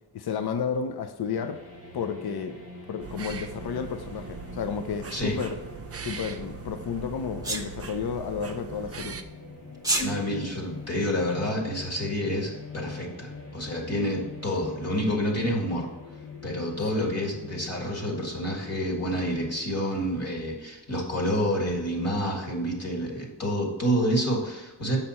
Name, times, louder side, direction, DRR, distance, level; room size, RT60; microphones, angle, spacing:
voice 1, 0.1-1.6 1.9-2.6 2.9-5.6 6.0-9.2 16.9-17.1, left 6 dB, 65° left, 8 dB, 0.6 m, -32 dB
sound 1, 1.3-19.7, left 3 dB, 90° left, 2.8 m, -44 dB
sound 2, 3.0-9.2, right 5 dB, 35° right, 0.6 m, -40 dB
Sneeze, 7.4-7.7 9.7-10.1, right 2 dB, 10° right, 1.0 m, -25 dB
voice 2, 10.0-15.9 16.4-25.0, equal, 35° left, -1 dB, 2.0 m, -28 dB
7.8 x 5.8 x 4.2 m, 1.1 s
wide cardioid pair, 160°, 42 cm